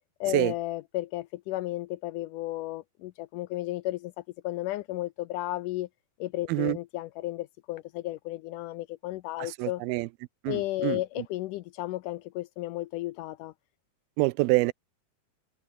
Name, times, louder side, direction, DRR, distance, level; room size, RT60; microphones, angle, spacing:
voice 1, 0.2-5.9 6.2-9.8 10.5-13.5, left 16 dB, 80° left, 1.8 m, -33 dB
voice 2, 9.6-10.1 10.4-11.0 14.2-14.7, right 22 dB, 85° right, 2.5 m, -26 dB
omnidirectional pair, 4.3 m